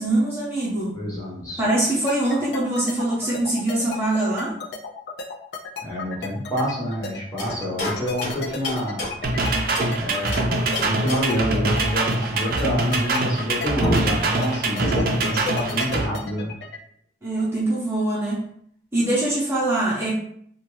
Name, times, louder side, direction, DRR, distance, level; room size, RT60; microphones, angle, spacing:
voice 1, 0.0-1.0 1.6-4.6 17.2-18.5 18.9-20.1, right 1 dB, 15° right, -8 dB, 0.7 m, -23 dB
voice 2, 0.9-1.6 5.8-9.1 9.9-16.5, equal, 20° left, -6 dB, 0.9 m, -27 dB
sound 1, 2.1-16.8, left 5 dB, 65° left, 0.4 m, -33 dB
sound 2, 7.4-10.0 10.3-11.5 13.4-13.5 13.8-15.4, left 1 dB, 50° left, 1.4 m, -29 dB
sound 3, 9.2-16.1, right 2 dB, 55° right, 0.4 m, -24 dB
2.7 x 2.2 x 3.0 m, 0.65 s
head